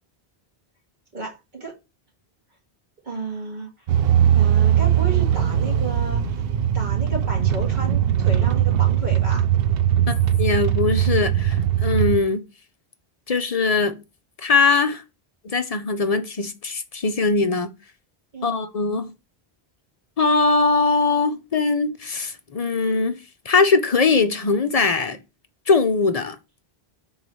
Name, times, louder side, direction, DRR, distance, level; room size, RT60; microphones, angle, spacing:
voice 1, 1.1-1.7 3.0-3.7 4.3-6.5 6.7-9.5 18.3-18.6, right 3 dB, 50° right, 2.1 m, -32 dB
sound 1, 3.9-12.2, right 10 dB, 70° right, 0.8 m, -20 dB
voice 2, 10.1-12.4 13.3-14.0 14.4-15.0 15.4-17.7 18.4-19.1 20.2-23.2 23.5-25.2 25.7-26.4, left 4 dB, 45° left, 0.6 m, -21 dB
4.7 x 3.9 x 5.4 m
omnidirectional pair, 1.0 m